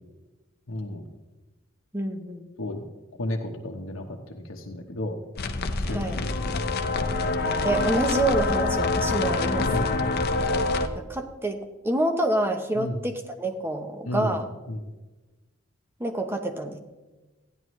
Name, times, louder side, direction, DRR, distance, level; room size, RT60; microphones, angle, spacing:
voice 1, 0.7-1.1 2.6-2.8 3.2-4.0 4.3-5.2 5.9-6.3 9.6-9.9 12.8-13.0 14.0-14.4 14.7-14.8, left 1 dB, 80° left, 1 dB, 0.9 m, -32 dB
voice 2, 1.9-2.4 5.9-6.2 7.4-9.7 11.0-11.6 11.8-14.5 16.0-16.8, right 1 dB, 10° right, 6 dB, 0.8 m, -27 dB
sound 1, 5.4-10.9, left 3 dB, 50° left, 0.6 m, -26 dB
14.0 x 10.0 x 3.1 m, 1.2 s
head